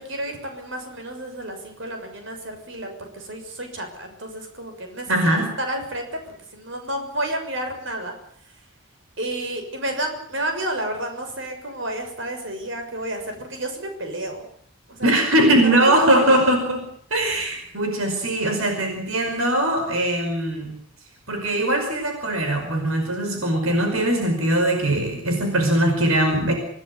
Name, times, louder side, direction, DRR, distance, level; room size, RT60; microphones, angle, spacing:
voice 1, 0.0-5.1 5.6-6.2 6.5-8.1 9.2-14.4 14.9-15.2 15.6-16.5, right 1 dB, 60° right, 5 dB, 6.6 m, -31 dB
voice 2, 5.1-5.5 15.0-16.8 17.1-20.7 21.3-26.5, right 1 dB, 75° right, 4 dB, 5.2 m, -21 dB
26.5 x 18.0 x 8.4 m, 0.62 s
head